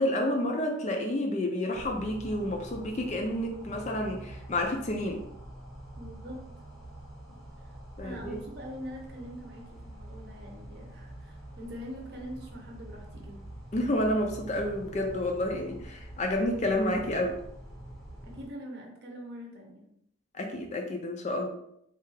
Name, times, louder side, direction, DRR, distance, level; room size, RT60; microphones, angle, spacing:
voice 1, 0.0-5.2 8.0-8.4 13.7-17.4 20.3-21.5, left 1 dB, 35° left, 3 dB, 0.4 m, -30 dB
sound 1, 1.7-18.5, right 1 dB, ahead, 0.7 m, -46 dB
voice 2, 6.0-6.5 7.6-7.8 8.0-13.5 18.2-19.9, equal, 50° right, 0 dB, 0.7 m, -43 dB
3.3 x 2.3 x 3.2 m, 0.75 s
head